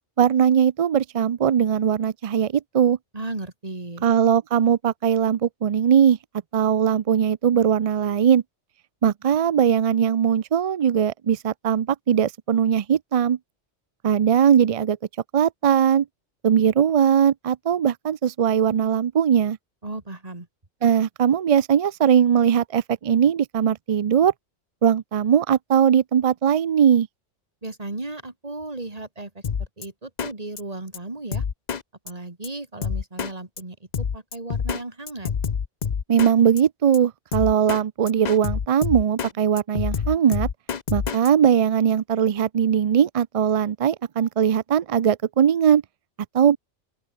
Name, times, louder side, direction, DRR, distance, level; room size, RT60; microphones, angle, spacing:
voice 1, 0.2-3.0 4.0-6.2 6.5-8.4 9.0-13.4 14.0-15.0 15.3-16.1 16.4-19.6 20.8-24.3 24.8-27.1 36.1-40.5 40.9-45.8 46.3-46.6, right 8 dB, 65° right, 0.3 m, -20 dB
voice 2, 3.1-4.0 19.8-20.5 27.6-31.4 32.0-35.3, right 2 dB, 30° right, 2.5 m, -35 dB
Drum kit, 29.4-29.9 30.2-30.3 30.6-30.7 30.9-31.0 31.3-31.8 32.1-32.2 32.4-32.5 32.8-33.3 33.6-33.7 33.9-34.8 35.1-36.3 36.6-36.7 36.9-37.0 37.3-37.8 38.1-39.3 39.6-41.3, left 6 dB, 40° left, 0.8 m, -27 dB
open air
omnidirectional pair, 1.2 m